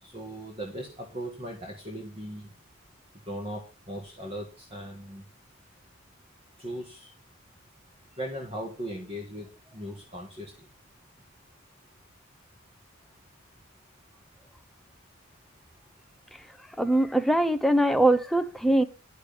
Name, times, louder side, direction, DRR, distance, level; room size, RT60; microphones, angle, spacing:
voice 1, 0.0-2.5 3.2-5.2 6.6-7.1 8.2-9.5 9.7-10.5, equal, 30° right, 1.8 m, -38 dB
voice 2, 16.8-18.8, right 1 dB, ahead, 0.6 m, -22 dB
10.5 x 6.6 x 6.7 m
head